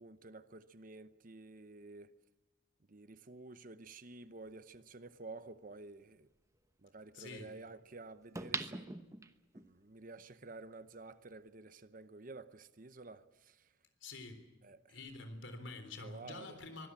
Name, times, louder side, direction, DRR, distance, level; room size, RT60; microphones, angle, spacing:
voice 1, 0.0-2.1 2.9-6.3 6.8-8.9 9.5-13.7 14.6-15.0 16.0-16.6, right 3 dB, 45° right, 0.9 m, -51 dB
sound 1, 4.7-4.8 8.4-9.7 10.2-10.3, right 3 dB, 15° right, 1.0 m, -41 dB
voice 2, 7.1-7.5 14.0-14.5 14.9-16.9, left 3 dB, 70° left, 3.8 m, -47 dB
24.0 x 18.0 x 8.7 m
head